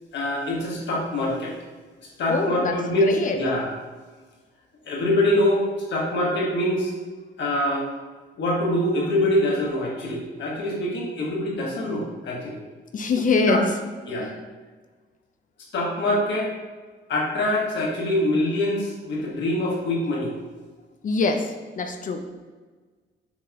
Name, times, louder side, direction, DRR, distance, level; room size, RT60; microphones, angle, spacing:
voice 1, 0.1-1.5 2.2-3.1 3.3-3.7 4.9-5.6 5.9-6.9 7.4-7.9 8.4-12.6 13.5-13.6 14.1-14.3 15.7-16.5 17.1-20.3, left 1 dB, 65° left, -3 dB, 1.2 m, -24 dB
voice 2, 2.3-3.4 12.9-13.8 14.2-14.4 21.0-22.2, left 3 dB, 40° left, 6 dB, 0.5 m, -24 dB
6.0 x 3.0 x 2.3 m, 1.4 s
cardioid pair, 90°, 20 cm